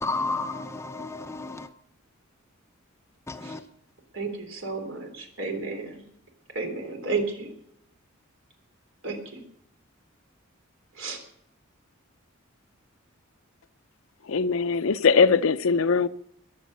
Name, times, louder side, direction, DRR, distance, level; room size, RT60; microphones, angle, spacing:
voice 1, 0.0-1.7 3.3-3.6, left 3 dB, 15° left, 0.7 m, -32 dB
voice 2, 4.1-6.0 6.5-7.5 9.0-9.4 10.9-11.2, right 4 dB, 65° right, 3.5 m, -32 dB
voice 3, 14.3-16.1, left 5 dB, 70° left, 0.6 m, -21 dB
21.5 x 7.5 x 6.6 m
head